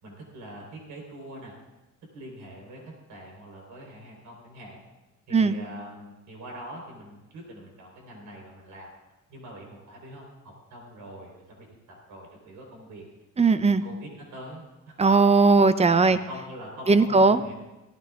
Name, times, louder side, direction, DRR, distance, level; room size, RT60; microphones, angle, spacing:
voice 1, 0.0-1.5 2.1-2.8 3.1-4.8 5.3-8.9 9.3-13.0 13.6-14.9 16.1-17.5, right 1 dB, 85° right, -1 dB, 4.0 m, -43 dB
voice 2, 13.4-13.8 15.0-16.2 16.9-17.4, right 3 dB, 20° right, 13 dB, 0.6 m, -18 dB
18.5 x 14.5 x 2.4 m, 1.0 s
cardioid pair, 90°, 30 cm